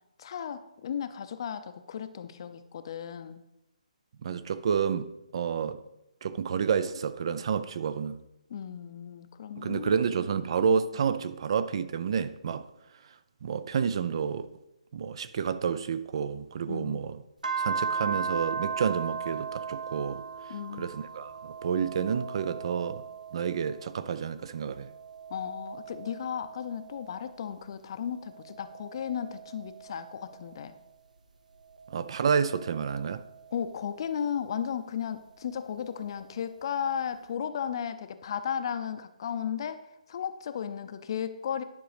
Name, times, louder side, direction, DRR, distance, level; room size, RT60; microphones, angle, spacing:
voice 1, 0.2-3.4 8.5-9.9 16.7-17.0 20.5-20.9 25.3-30.8 33.5-39.8 40.1-41.6, left 8 dB, 40° left, 0.6 m, -35 dB
voice 2, 4.2-5.8 6.2-8.2 9.6-12.7 13.4-14.5 14.9-17.2 17.6-20.2 20.8-23.0 23.3-24.9 31.9-33.2, right 6 dB, 45° right, 0.5 m, -29 dB
sound 1, 17.4-24.2 24.6-27.5 28.1-30.9 31.6-34.1 35.4-36.5, right 5 dB, 90° right, 0.8 m, -38 dB
10.5 x 5.2 x 5.0 m
hypercardioid pair, 165°, 4 cm